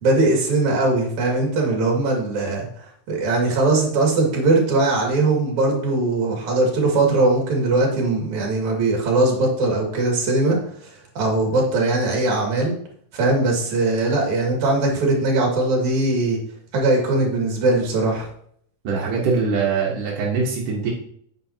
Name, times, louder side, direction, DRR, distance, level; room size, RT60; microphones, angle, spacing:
voice 1, 0.0-2.7 3.1-10.6 11.2-12.7 13.1-16.4 16.7-18.3, right 2 dB, 65° right, 0 dB, 3.4 m, -20 dB
voice 2, 18.8-20.9, right 4 dB, 85° right, -3 dB, 3.0 m, -22 dB
9.2 x 7.7 x 2.8 m, 0.64 s
omnidirectional pair, 3.6 m